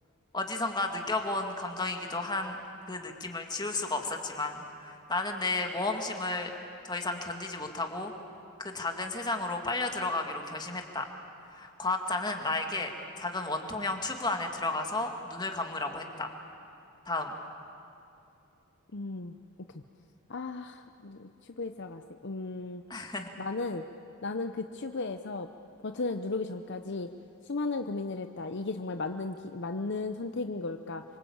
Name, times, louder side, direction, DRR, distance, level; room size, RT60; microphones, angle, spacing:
voice 1, 0.3-2.6 2.9-6.5 6.9-8.1 8.6-11.1 11.5-12.9 13.2-16.3 17.1-17.3 22.9-23.3, left 2 dB, 20° left, 4 dB, 2.2 m, -33 dB
voice 2, 18.9-19.4 20.3-22.8 23.4-23.8 24.2-25.5 25.8-27.1 27.4-31.0, left 3 dB, 50° left, 7 dB, 0.8 m, -35 dB
27.0 x 24.5 x 8.7 m, 2.7 s
head